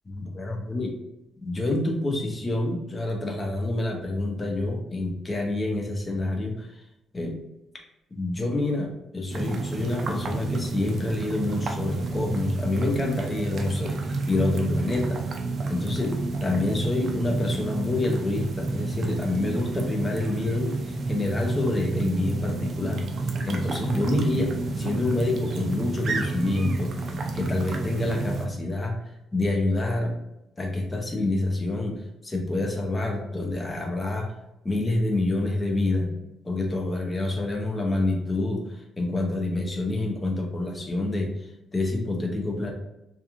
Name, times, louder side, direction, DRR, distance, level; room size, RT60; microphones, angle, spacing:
voice 1, 0.1-0.9 1.4-6.7 7.1-7.3 8.1-15.2 15.7-16.2 16.4-23.1 23.5-26.9 27.3-29.0 29.3-30.1 30.6-31.9 32.2-34.3 34.6-36.1 36.4-38.6 39.0-41.3 41.7-42.7, left 2 dB, 20° left, 1 dB, 0.6 m, -27 dB
sound 1, 9.3-28.5, right 3 dB, 50° right, 0.4 m, -30 dB
2.9 x 2.4 x 2.5 m, 0.87 s
cardioid pair, 125°, 0 cm